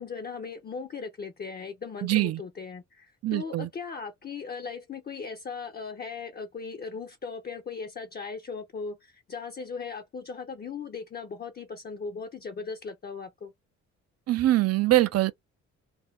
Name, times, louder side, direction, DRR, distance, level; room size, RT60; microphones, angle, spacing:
voice 1, 0.0-13.5, left 5 dB, 30° left, 0.5 m, -38 dB
voice 2, 2.0-2.4 3.2-3.7 14.3-15.3, right 16 dB, 55° right, 0.4 m, -23 dB
2.5 x 2.1 x 3.3 m
cardioid pair, 90°, 30 cm